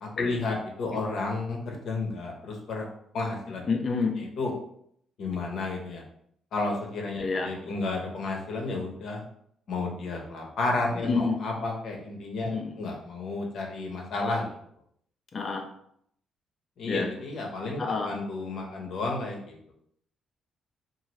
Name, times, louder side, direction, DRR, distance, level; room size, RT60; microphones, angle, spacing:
voice 1, 0.0-2.9 3.1-3.7 4.4-4.5 5.2-6.0 6.5-9.2 9.7-14.5 16.8-19.5, left 3 dB, 70° left, 0 dB, 0.8 m, -32 dB
voice 2, 3.7-4.2 7.2-7.8 10.9-11.4 12.4-12.8 15.3-15.6 16.9-17.1 17.8-18.1, left 4 dB, 45° left, 4 dB, 0.5 m, -29 dB
2.6 x 2.6 x 3.0 m, 0.68 s
cardioid pair, 90°, 0 cm